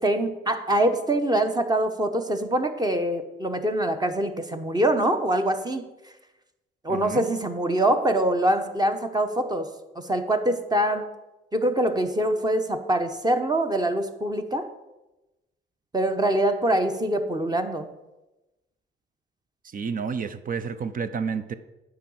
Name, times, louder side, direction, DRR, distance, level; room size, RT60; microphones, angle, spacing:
voice 1, 0.0-5.9 6.8-9.7 9.9-11.1 11.5-14.7 15.9-17.9, right 1 dB, 20° right, 7 dB, 1.0 m, -24 dB
voice 2, 6.9-7.3 19.6-21.5, right 6 dB, 45° right, 12 dB, 0.7 m, -30 dB
9.5 x 4.9 x 7.7 m, 1.0 s
cardioid pair, 90°, 20 cm